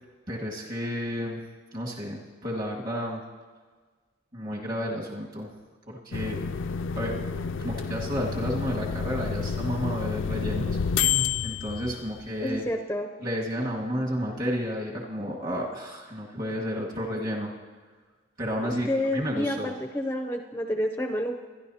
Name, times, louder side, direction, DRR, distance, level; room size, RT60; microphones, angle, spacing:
voice 1, 0.3-1.4 1.7-3.2 4.3-5.5 5.9-6.4 6.9-7.2 7.6-10.8 11.4-12.6 13.2-17.5 18.4-19.7, equal, 45° right, -2 dB, 1.8 m, -31 dB
sound 1, 6.1-12.5, left 6 dB, 70° left, 0.4 m, -29 dB
voice 2, 12.4-13.1 18.6-21.4, left 1 dB, 10° left, 3 dB, 0.5 m, -29 dB
23.5 x 11.0 x 2.8 m, 1.4 s
head